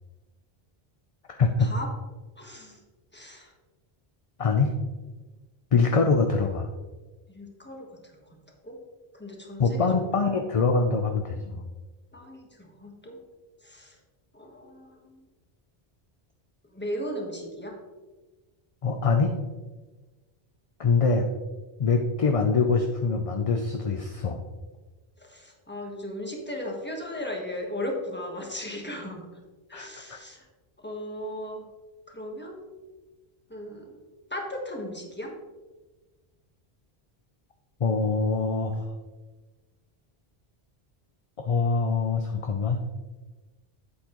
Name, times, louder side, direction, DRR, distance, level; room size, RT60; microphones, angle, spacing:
voice 1, 1.4-1.7 4.4-4.7 5.7-6.7 9.6-11.7 18.8-19.3 20.8-21.3 21.8-24.4 29.7-30.2 37.8-38.8 41.4-42.8, left 4 dB, 40° left, 4 dB, 0.5 m, -24 dB
voice 2, 2.4-2.8 3.1-3.5 7.3-7.9 8.6-8.8 9.1-9.9 12.1-13.2 13.6-13.9 14.3-15.3 16.7-17.7 25.2-29.3 29.7-30.4 30.8-31.6 32.1-32.6 33.5-34.0 34.3-35.3, left 1 dB, 10° left, 0 dB, 1.3 m, -36 dB
8.3 x 8.0 x 3.0 m, 1.2 s
omnidirectional pair, 1.0 m